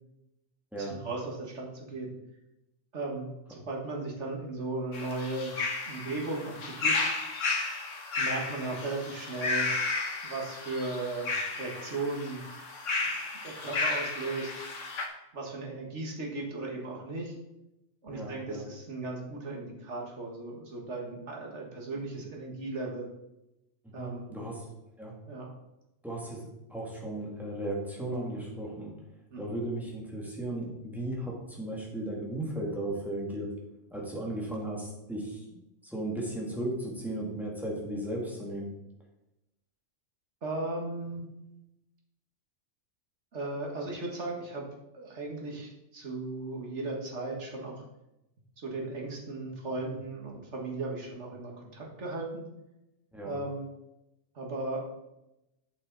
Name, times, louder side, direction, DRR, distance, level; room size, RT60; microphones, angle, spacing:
voice 1, 0.8-2.1 2.9-5.6 5.9-7.0 8.2-9.7 10.2-12.4 13.0-13.1 13.4-14.5 15.3-17.4 18.0-23.1 23.9-24.3 25.3-25.5 29.3-29.4 40.4-41.3 43.3-44.7 44.9-47.8 48.6-52.4 53.2-53.7 54.4-54.8, right 2 dB, 65° right, -1 dB, 2.0 m, -36 dB
sound 1, 4.9-15.1, left 3 dB, 75° left, 1.6 m, -33 dB
voice 2, 18.1-18.6 24.0-24.6 25.0-25.1 26.0-28.9 29.4-33.5 33.9-38.7 53.1-53.4, right 1 dB, ahead, -3 dB, 2.2 m, -36 dB
8.6 x 7.3 x 4.0 m, 0.91 s
omnidirectional pair, 1.3 m